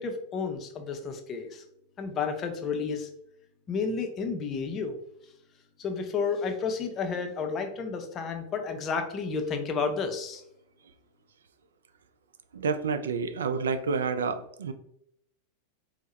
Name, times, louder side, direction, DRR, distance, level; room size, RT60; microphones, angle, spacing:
voice 1, 0.0-1.6 2.0-3.1 3.7-5.0 5.8-10.4, left 5 dB, 30° left, 5 dB, 0.5 m, -31 dB
voice 2, 12.5-14.7, right 5 dB, 65° right, 10 dB, 0.3 m, -29 dB
4.4 x 2.1 x 3.0 m, 0.75 s
figure-of-eight pair, 90°, 0 cm